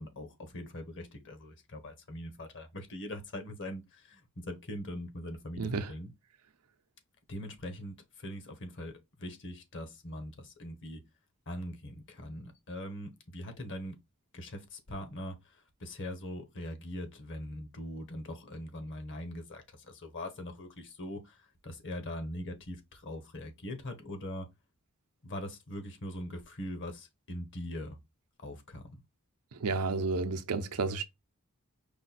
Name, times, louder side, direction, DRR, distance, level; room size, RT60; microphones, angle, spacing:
voice 1, 0.0-6.1 7.3-11.0 11.5-14.0 14.3-24.5 25.2-28.0 28.4-29.0, left 1 dB, 55° left, 1.2 m, -42 dB
voice 2, 5.6-5.9 29.5-31.0, right 4 dB, 85° right, 0.6 m, -31 dB
5.1 x 2.3 x 4.1 m
head